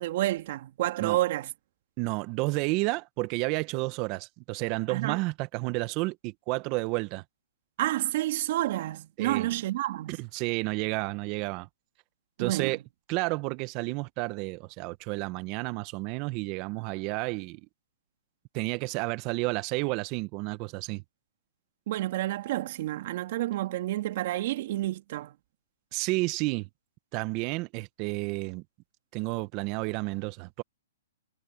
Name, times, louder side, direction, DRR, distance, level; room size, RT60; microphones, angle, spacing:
voice 1, 0.0-1.5 4.9-5.2 7.8-10.2 12.4-12.8 21.9-25.3, right 15 dB, 50° right, 2.4 m, -29 dB
voice 2, 2.0-7.2 9.2-9.5 10.1-11.7 12.4-12.8 13.1-17.6 18.5-21.0 25.9-26.7 27.1-28.6 29.1-30.6, right 24 dB, 35° right, 1.3 m, -31 dB
hypercardioid pair, 140°, 0 cm